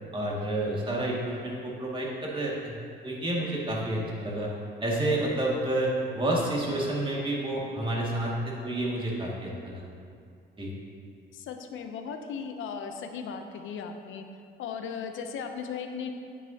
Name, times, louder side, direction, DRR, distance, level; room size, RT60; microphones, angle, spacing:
voice 1, 0.1-2.8 3.0-4.5 4.8-9.8 10.6-10.7, right 1 dB, 25° right, -4 dB, 2.1 m, -29 dB
voice 2, 11.3-14.2 14.6-16.1, left 6 dB, 80° left, 6 dB, 0.7 m, -37 dB
9.3 x 8.4 x 2.8 m, 2.4 s
cardioid pair, 90°, 20 cm